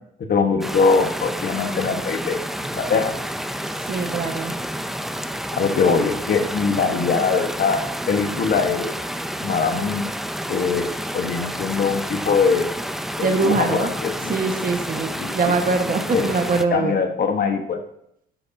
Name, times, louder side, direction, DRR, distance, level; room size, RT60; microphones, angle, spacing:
voice 1, 0.3-3.2 5.5-8.9 9.4-10.1 10.5-12.7 13.2-14.3 15.2-15.6 16.1-16.3 16.7-17.8, left 5 dB, 50° left, 5 dB, 1.4 m, -22 dB
sound 1, 0.6-16.6, equal, ahead, 0.5 m, -30 dB
voice 2, 3.9-4.6 13.2-13.9 14.2-15.1 15.3-17.0, right 4 dB, 45° right, 5 dB, 1.5 m, -22 dB
12.0 x 7.9 x 2.8 m, 0.74 s
cardioid pair, 90°, 20 cm